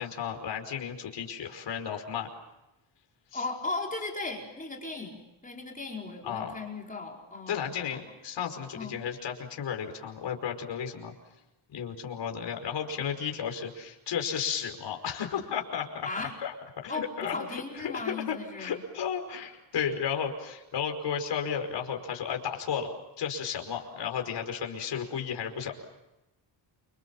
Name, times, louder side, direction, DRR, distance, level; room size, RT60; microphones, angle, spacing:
voice 1, 0.0-2.3 3.3-3.4 6.2-6.6 7.5-11.1 11.7-16.1 16.4-16.5 16.8-25.7, left 7 dB, 60° left, 4 dB, 5.3 m, -33 dB
voice 2, 3.3-8.0 8.7-9.0 16.0-16.3 16.9-18.8, left 3 dB, 15° left, 0 dB, 4.8 m, -37 dB
29.0 x 27.0 x 7.3 m, 0.93 s
wide cardioid pair, 160°, 47 cm